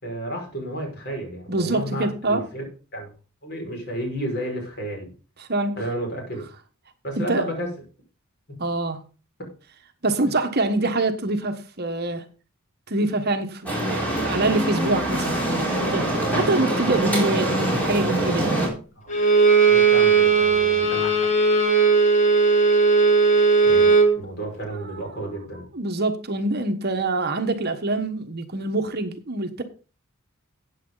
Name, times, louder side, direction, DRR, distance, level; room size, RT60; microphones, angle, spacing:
voice 1, 0.0-2.6 2.9-3.1 3.4-5.1 5.8-6.4 7.0-7.7 19.0-19.1 19.7-21.3 23.6-23.9 24.2-25.7, right 1 dB, 50° left, 5.4 m, -32 dB
voice 2, 1.5-2.4 5.4-5.7 7.2-7.5 8.6-9.0 10.0-12.3 12.9-18.6 24.7-25.2 25.7-29.6, right 2 dB, 45° right, 1.3 m, -25 dB
sound 1, 13.7-18.7, right 1 dB, 5° left, 4.4 m, -24 dB
Bowed string instrument, 19.1-24.1, right 4 dB, 35° left, 2.4 m, -17 dB
13.5 x 8.9 x 3.9 m
head